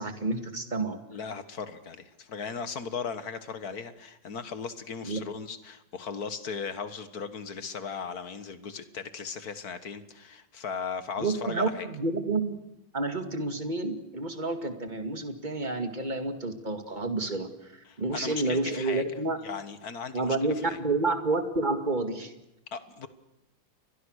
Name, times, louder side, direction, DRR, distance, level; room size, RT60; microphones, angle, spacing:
voice 1, 0.0-1.0 5.0-5.2 11.2-12.6 12.9-19.4 20.1-22.3, right 3 dB, 25° right, 7 dB, 2.2 m, -29 dB
voice 2, 1.1-11.9 17.9-19.0 19.4-20.4 20.6-20.8 22.7-23.1, left 6 dB, 50° left, 11 dB, 2.0 m, -37 dB
30.0 x 23.0 x 6.5 m, 0.87 s
omnidirectional pair, 2.2 m